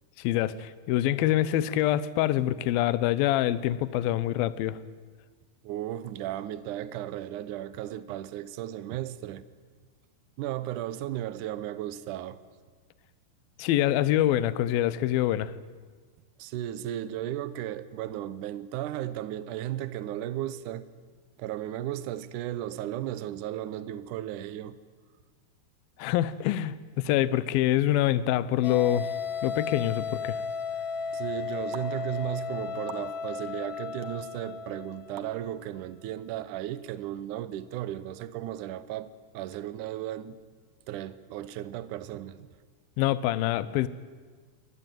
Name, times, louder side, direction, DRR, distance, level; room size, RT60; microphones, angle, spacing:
voice 1, 0.2-4.8 13.6-15.6 26.0-29.1 29.4-30.4 43.0-43.9, left 13 dB, 75° left, 2.4 m, -25 dB
voice 2, 5.6-9.5 10.4-12.4 16.4-20.9 21.4-24.8 31.1-40.4 40.9-42.5, right 12 dB, 80° right, 1.8 m, -35 dB
sound 1, 28.6-35.5, left 5 dB, 50° left, 3.0 m, -35 dB
sound 2, 31.7-31.9 32.9-33.1 34.0-34.1 35.2-35.3, right 8 dB, 55° right, 2.4 m, -42 dB
24.5 x 19.5 x 9.3 m
omnidirectional pair, 4.8 m